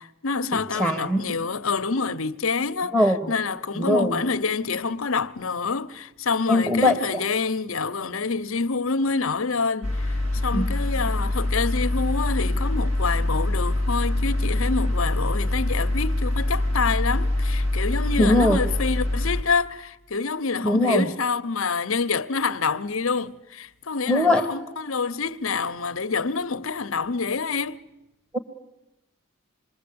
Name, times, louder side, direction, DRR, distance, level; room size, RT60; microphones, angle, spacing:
voice 1, 0.0-27.8, left 4 dB, 80° left, 0.9 m, -27 dB
voice 2, 0.5-1.2 2.9-3.2 3.8-4.2 6.5-7.2 10.5-10.7 18.2-18.6 20.6-21.1 24.1-24.4, left 1 dB, 15° right, 1.3 m, -21 dB
sound 1, 9.8-19.4, left 1 dB, 75° right, 4.2 m, -24 dB
27.0 x 22.0 x 8.7 m
head